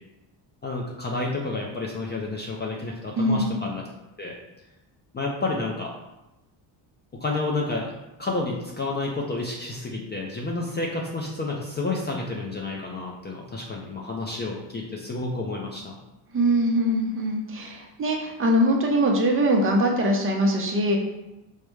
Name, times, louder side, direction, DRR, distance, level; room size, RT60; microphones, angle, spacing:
voice 1, 0.6-3.8 4.2-4.4 5.1-5.9 7.1-7.9 8.2-16.0, left 3 dB, 25° left, -2 dB, 0.4 m, -30 dB
voice 2, 3.2-3.6 16.3-21.0, equal, 25° right, 1 dB, 0.7 m, -22 dB
4.8 x 2.1 x 3.1 m, 0.96 s
cardioid pair, 115°, 48 cm